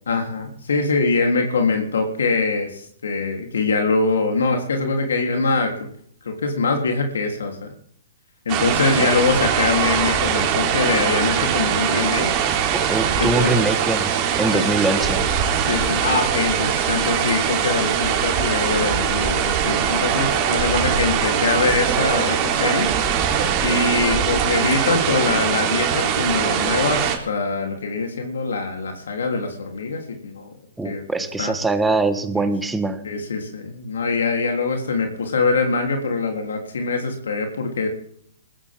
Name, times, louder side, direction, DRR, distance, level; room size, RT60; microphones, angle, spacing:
voice 1, 0.1-5.7 6.2-7.7 8.5-12.3 13.2-13.7 14.5-14.7 15.6-22.9 23.6-30.5 30.8-31.0 31.4-31.5 33.0-37.9, left 4 dB, 85° left, 3 dB, 3.5 m, -23 dB
sound 1, 8.5-27.2, right 8 dB, 30° right, 3.4 m, -21 dB
voice 2, 12.7-15.3 30.8-33.0, right 3 dB, 5° right, 8 dB, 1.4 m, -23 dB
21.0 x 15.0 x 3.7 m, 0.63 s
hypercardioid pair, 150°, 0 cm